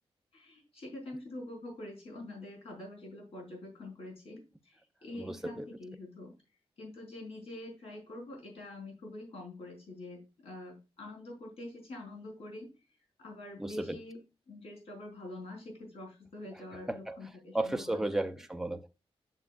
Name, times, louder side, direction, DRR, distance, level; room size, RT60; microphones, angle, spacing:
voice 1, 0.3-6.3 6.8-12.7 13.2-14.2 14.5-18.2, left 2 dB, 75° left, 4.9 m, -45 dB
voice 2, 5.2-5.6 13.6-14.0 16.9-17.2 17.5-18.9, right 1 dB, 5° right, 0.6 m, -34 dB
9.7 x 6.8 x 2.5 m
wide cardioid pair, 170°, 10 cm